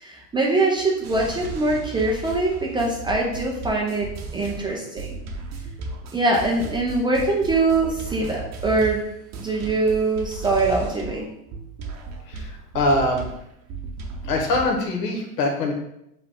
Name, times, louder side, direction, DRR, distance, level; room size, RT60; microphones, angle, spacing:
voice 1, 0.0-4.1 4.3-5.1 6.1-9.0 9.4-11.3, right 2 dB, 10° right, -2 dB, 0.3 m, -23 dB
sound 1, 1.0-11.3 11.5-14.8, right 4 dB, 35° right, 0.8 m, -35 dB
voice 2, 12.7-13.3 14.3-15.7, left 2 dB, 80° left, 2 dB, 1.2 m, -22 dB
5.9 x 2.3 x 3.4 m, 0.78 s
hypercardioid pair, 105°, 48 cm